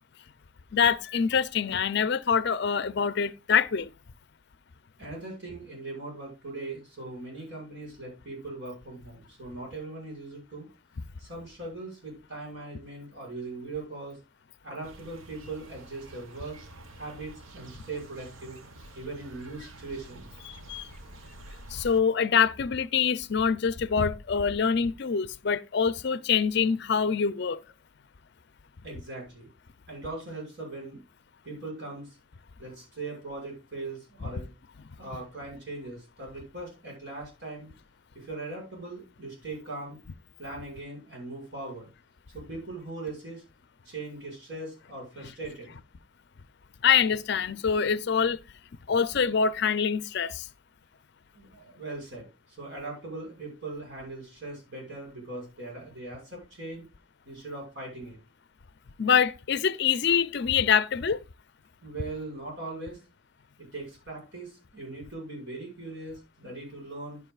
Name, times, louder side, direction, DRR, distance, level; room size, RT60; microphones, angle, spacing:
voice 1, 0.7-3.9 20.4-20.9 21.7-27.6 46.8-48.4 48.9-50.4 59.0-61.2, left 6 dB, 55° left, 0.5 m, -25 dB
voice 2, 5.0-10.7 11.2-14.2 14.6-16.6 16.9-18.6 18.9-20.3 28.8-29.5 29.9-31.0 31.4-32.2 32.6-34.4 35.0-37.7 38.1-40.0 40.4-41.9 42.3-43.4 43.8-45.8 51.3-56.9 57.2-58.2 61.8-63.0 63.6-67.2, right 2 dB, 60° right, 6.0 m, -40 dB
sound 1, 14.8-22.0, right 2 dB, 85° right, 1.1 m, -48 dB
10.5 x 9.9 x 2.4 m
head